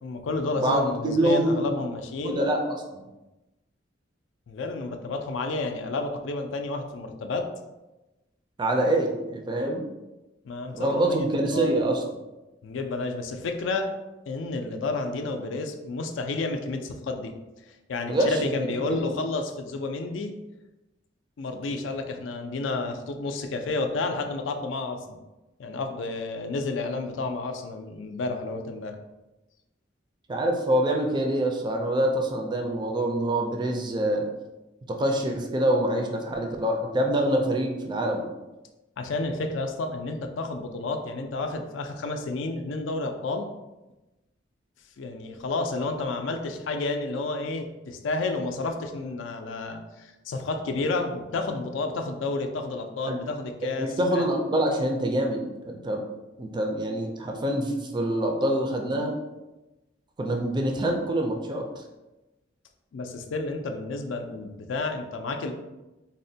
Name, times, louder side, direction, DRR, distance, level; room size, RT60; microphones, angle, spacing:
voice 1, 0.0-2.4 4.5-7.5 10.4-11.7 12.6-13.9 14.3-17.3 17.9-20.3 21.4-25.2 25.6-29.0 39.0-43.5 45.0-54.3 62.9-65.5, left 3 dB, 75° left, 5 dB, 0.4 m, -31 dB
voice 2, 0.6-1.8 2.2-2.6 2.9-3.0 8.6-9.9 10.7-12.0 18.0-19.0 30.3-34.3 35.0-38.3 53.1-53.2 53.6-56.0 56.4-59.1 60.2-61.7, right 1 dB, 25° right, 1 dB, 0.4 m, -25 dB
4.0 x 2.1 x 2.6 m, 1.0 s
head